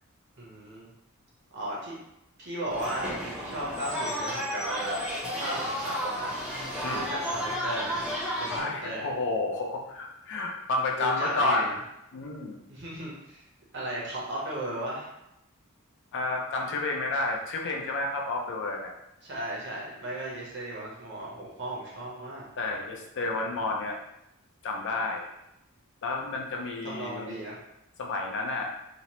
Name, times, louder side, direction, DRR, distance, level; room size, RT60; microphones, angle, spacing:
voice 1, 0.4-0.9 1.5-2.0 2.4-5.0 5.4-6.4 6.9-8.1 8.4-9.1 11.0-11.8 12.7-13.4 13.7-15.1 19.2-22.5 26.8-27.6, right 1 dB, 55° right, -5 dB, 0.9 m, -36 dB
sound 1, 2.7-8.6, equal, 5° right, 0.7 m, -32 dB
voice 2, 8.5-11.7 12.1-12.6 16.1-18.9 22.6-24.0 24.6-25.3 26.0-27.4 28.0-28.7, left 3 dB, 55° left, 1 dB, 0.5 m, -30 dB
2.8 x 2.0 x 2.9 m, 0.85 s
head